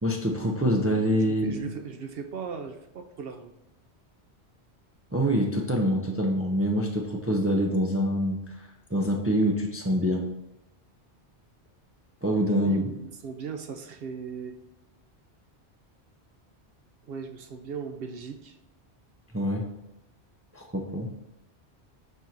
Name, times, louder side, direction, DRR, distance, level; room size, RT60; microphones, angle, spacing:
voice 1, 0.0-1.6 5.1-8.4 8.9-10.2 12.2-12.9 19.3-19.6 20.5-21.1, equal, 15° right, 1 dB, 0.5 m, -25 dB
voice 2, 1.1-3.5 12.6-14.6 17.0-18.6, right 6 dB, 65° right, 6 dB, 0.8 m, -38 dB
7.4 x 2.7 x 5.8 m, 0.87 s
omnidirectional pair, 1.1 m